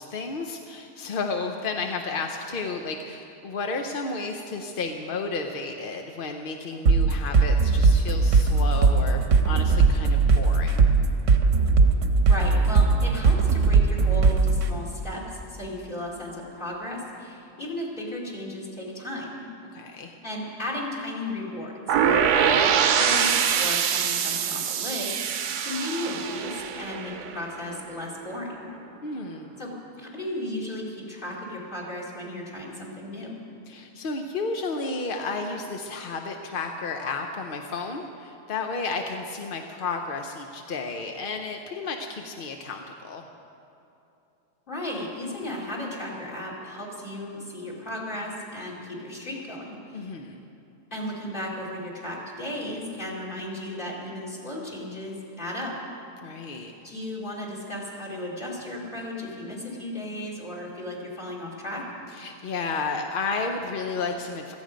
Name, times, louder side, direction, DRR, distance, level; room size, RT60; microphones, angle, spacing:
voice 1, 0.0-10.9 19.7-20.2 29.0-29.5 33.7-43.2 49.9-50.4 56.2-56.7 62.1-64.5, left 4 dB, 50° left, 4 dB, 0.7 m, -32 dB
sound 1, 6.9-14.7, right 4 dB, 55° right, 1.2 m, -19 dB
voice 2, 12.3-19.4 20.2-28.7 29.6-33.3 44.7-50.1 50.9-55.7 56.8-61.8, left 1 dB, 30° left, -2 dB, 2.9 m, -35 dB
sound 2, 21.9-27.8, right 7 dB, 80° right, 1.3 m, -24 dB
16.5 x 14.0 x 5.1 m, 2.9 s
omnidirectional pair, 1.7 m